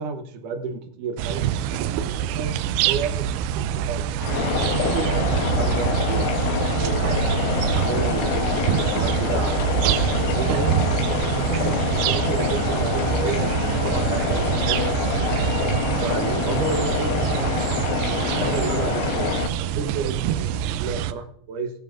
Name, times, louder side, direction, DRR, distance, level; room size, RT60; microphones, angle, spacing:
voice 1, 0.0-2.5 2.8-6.4 6.6-7.0 7.7-10.8 11.2-15.3 16.0-21.7, right 5 dB, 70° right, 7 dB, 2.3 m, -32 dB
sound 1, 1.2-21.1, right 9 dB, 90° right, 2.6 m, -25 dB
sound 2, 4.2-19.5, left 8 dB, 80° left, 2.7 m, -26 dB
19.0 x 9.9 x 2.5 m, 0.64 s
omnidirectional pair, 4.4 m